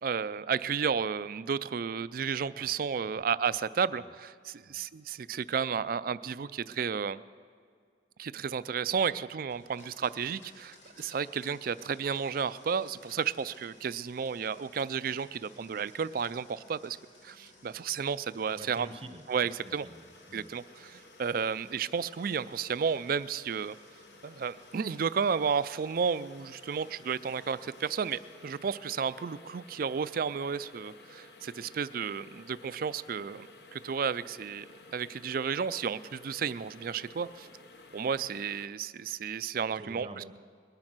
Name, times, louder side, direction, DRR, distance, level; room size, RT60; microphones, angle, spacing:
voice 1, 0.0-7.2 8.2-17.0 17.2-18.9 19.3-19.9 20.3-23.8 24.2-34.7 34.9-37.5 37.9-40.2, right 6 dB, 50° right, 15 dB, 0.4 m, -32 dB
Domestic sounds home sounds, 9.5-28.7, left 2 dB, 85° left, 2.7 m, -59 dB
voice 2, 18.5-20.5 39.8-40.4, right 1 dB, 30° right, 8 dB, 0.7 m, -48 dB
sound 1, 19.3-38.7, left 2 dB, 60° left, 1.0 m, -54 dB
21.0 x 10.5 x 6.1 m, 2.1 s
head